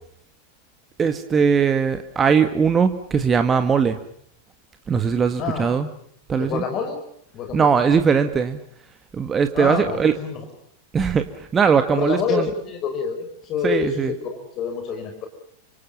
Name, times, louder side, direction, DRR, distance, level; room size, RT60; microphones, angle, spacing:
voice 1, 1.0-4.0 4.9-5.9 6.3-6.6 7.5-8.6 9.1-10.1 10.9-12.5 13.6-14.1, right 6 dB, 20° right, 9 dB, 1.8 m, -20 dB
voice 2, 6.4-7.0 7.3-7.7 9.5-10.4 12.0-15.3, left 6 dB, 35° left, 5 dB, 5.2 m, -27 dB
30.0 x 26.5 x 5.6 m, 0.67 s
figure-of-eight pair, 90°, 0 cm